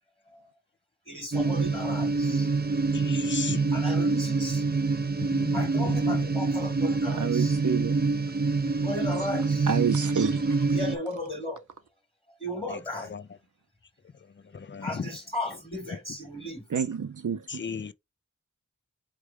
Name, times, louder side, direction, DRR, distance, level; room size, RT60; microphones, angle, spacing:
voice 1, 1.1-2.5 3.7-4.7 5.5-7.6 8.8-9.8 10.7-11.6 12.4-13.1 14.8-16.6, left 1 dB, 15° left, 1.6 m, -35 dB
sound 1, 1.3-11.0, right 4 dB, 30° right, 0.7 m, -26 dB
voice 2, 2.9-3.7 5.3-6.2 12.7-13.3 14.5-15.1 17.5-17.9, left 5 dB, 40° left, 0.4 m, -35 dB
voice 3, 7.1-7.9 9.7-10.6 16.7-17.7, right 7 dB, 75° right, 0.6 m, -29 dB
4.6 x 3.3 x 3.4 m
wide cardioid pair, 55°, 31 cm